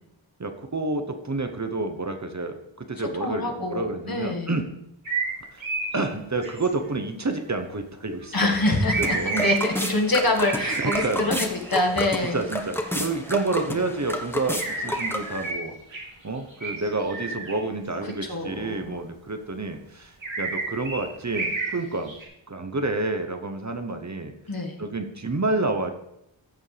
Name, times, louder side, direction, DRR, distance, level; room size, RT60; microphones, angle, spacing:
voice 1, 0.4-1.0 1.3-2.5 3.0-4.6 5.9-9.5 10.8-11.3 12.3-14.6 14.8-15.7 16.2-19.8 20.4-21.5 21.7-22.1 22.5-24.3 24.8-25.9, right 3 dB, 35° right, 6 dB, 1.0 m, -29 dB
voice 2, 3.2-4.5 8.3-12.4 18.2-18.9 24.5-24.8, left 2 dB, 45° left, 1 dB, 1.7 m, -25 dB
sound 1, 5.1-5.3 5.6-6.0 6.4-6.7 8.8-11.8 14.6-15.6 15.9-16.0 16.5-17.5 18.1-18.2 20.2-21.7 22.1-22.2, right 4 dB, 75° right, 3.1 m, -30 dB
sound 2, 8.4-15.5, equal, 5° left, 1.1 m, -31 dB
14.0 x 7.2 x 3.4 m, 0.83 s
wide cardioid pair, 60°, 47 cm